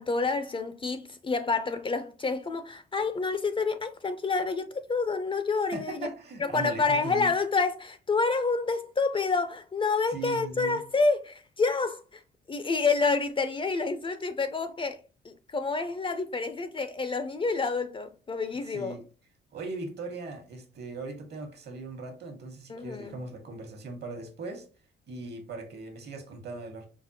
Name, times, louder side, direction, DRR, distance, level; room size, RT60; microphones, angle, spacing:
voice 1, 0.0-6.1 6.4-12.2 12.5-15.0 15.2-19.0 22.7-23.1, left 4 dB, 25° left, 0.4 m, -28 dB
voice 2, 5.7-7.3 10.1-10.8 18.6-19.0 19.5-24.7 25.1-26.9, right 3 dB, 55° right, 1.1 m, -39 dB
5.0 x 2.1 x 2.7 m
cardioid pair, 90°, 20 cm